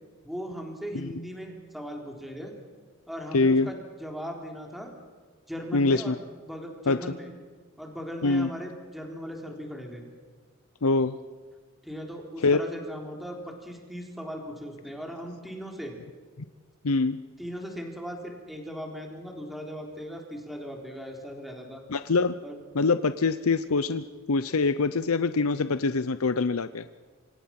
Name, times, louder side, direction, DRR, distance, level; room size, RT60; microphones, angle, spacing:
voice 1, 0.2-2.5 3.1-4.9 5.5-6.2 6.4-7.3 7.8-10.0 11.8-16.0 17.4-21.8 22.4-22.6, equal, ahead, 1 dB, 3.8 m, -38 dB
voice 2, 3.3-3.7 5.7-6.2 6.9-7.0 8.2-8.5 10.8-11.2 12.4-12.6 16.8-17.2 21.9-22.3 22.7-26.8, left 3 dB, 85° left, 12 dB, 0.7 m, -24 dB
27.0 x 25.5 x 6.0 m, 1.5 s
head